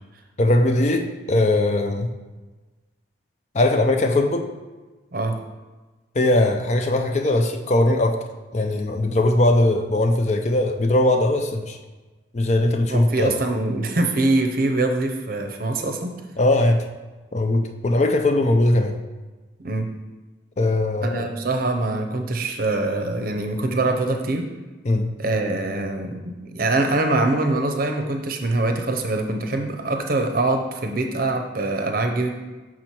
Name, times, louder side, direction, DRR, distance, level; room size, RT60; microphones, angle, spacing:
voice 1, 0.4-2.1 3.5-4.5 6.2-8.2 8.5-11.8 12.3-13.4 16.4-16.8 17.3-19.0 20.6-21.3 24.8-25.1, left 1 dB, 35° left, 5 dB, 0.4 m, -20 dB
voice 2, 12.9-16.1 19.6-19.9 21.0-24.4 25.2-32.3, right 2 dB, 45° right, 4 dB, 0.6 m, -23 dB
6.1 x 4.6 x 4.4 m, 1.2 s
head